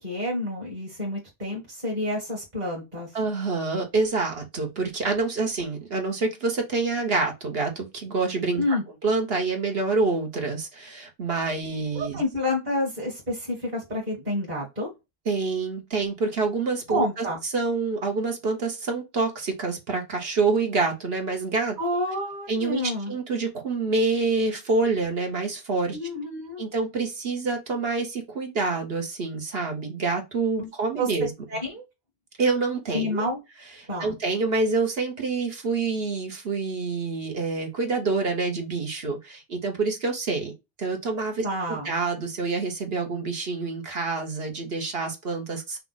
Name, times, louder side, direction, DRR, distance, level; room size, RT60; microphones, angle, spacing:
voice 1, 0.0-3.1 8.6-8.8 11.9-14.9 16.9-17.4 21.8-23.1 25.9-26.6 30.6-30.7 31.0-31.1 31.5-31.8 32.9-33.4 33.9-34.1 39.0-39.1 41.4-41.9, left 1 dB, 45° right, 1.8 m, -29 dB
voice 2, 3.1-8.8 9.0-12.2 15.2-17.2 17.5-21.8 22.5-26.0 26.6-31.3 32.4-33.3 33.8-40.5 40.8-45.8, right 3 dB, 70° right, 1.5 m, -27 dB
5.5 x 2.4 x 4.0 m
omnidirectional pair, 1.1 m